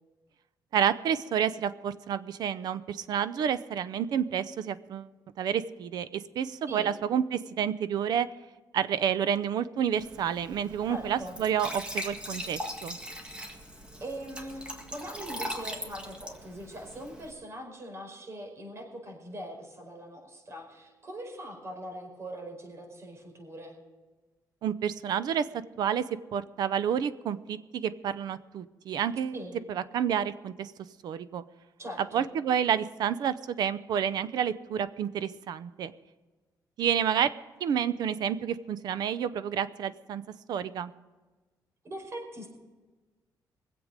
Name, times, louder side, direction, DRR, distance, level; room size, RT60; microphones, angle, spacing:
voice 1, 0.7-5.1 5.4-8.3 8.7-13.0 24.6-25.5 25.8-26.0 26.3-29.3 29.7-30.7 31.0-31.4 32.0-35.9 36.8-37.3 37.6-40.2 40.5-40.9, right 8 dB, 65° right, 14 dB, 0.7 m, -29 dB
Glass / Trickle dribble / Fill (with liquid), 10.0-17.3, equal, 15° right, 1.8 m, -40 dB
voice 2, 10.9-11.4 14.0-23.8 29.3-29.6 31.8-32.2 41.8-42.5, right 1 dB, 40° right, 2 dB, 4.9 m, -41 dB
23.5 x 7.9 x 5.2 m, 1.2 s
cardioid pair, 145°, 7 cm